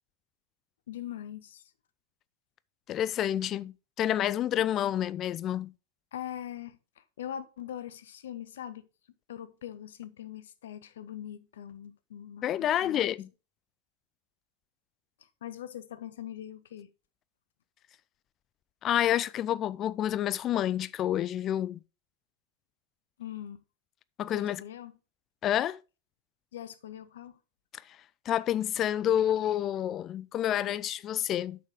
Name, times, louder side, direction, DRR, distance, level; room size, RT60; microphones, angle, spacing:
voice 1, 0.9-1.7 6.1-8.9 9.3-13.1 15.4-16.9 23.2-23.6 24.3-24.9 26.5-27.4, left 10 dB, 60° left, 0.8 m, -42 dB
voice 2, 2.9-5.7 12.4-13.3 18.8-21.8 24.2-24.6 25.4-25.8 28.3-31.6, left 11 dB, 30° left, 0.4 m, -29 dB
8.3 x 6.5 x 3.7 m
figure-of-eight pair, 90°, 0 cm